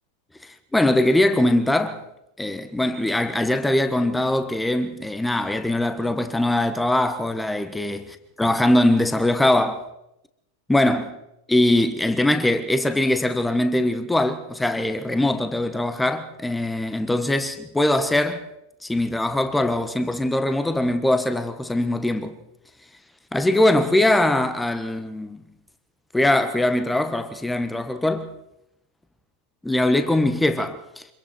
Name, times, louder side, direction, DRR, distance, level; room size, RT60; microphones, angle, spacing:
voice 1, 0.4-2.0 2.4-8.0 8.4-9.8 10.7-11.2 11.5-18.5 18.8-22.3 23.3-25.4 26.1-28.3 29.6-30.8, left 1 dB, 5° left, 1.3 m, -21 dB
25.5 x 22.5 x 4.5 m
figure-of-eight pair, 90°, 0 cm